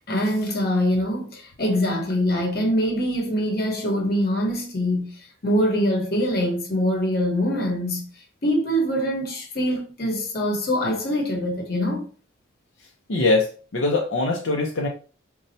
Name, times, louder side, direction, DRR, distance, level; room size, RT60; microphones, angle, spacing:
voice 1, 0.1-8.1 8.4-12.1, equal, 50° left, 1.0 m, -24 dB
voice 2, 13.1-14.9, left 3 dB, 75° left, 0.6 m, -22 dB
4.2 x 2.3 x 2.7 m
head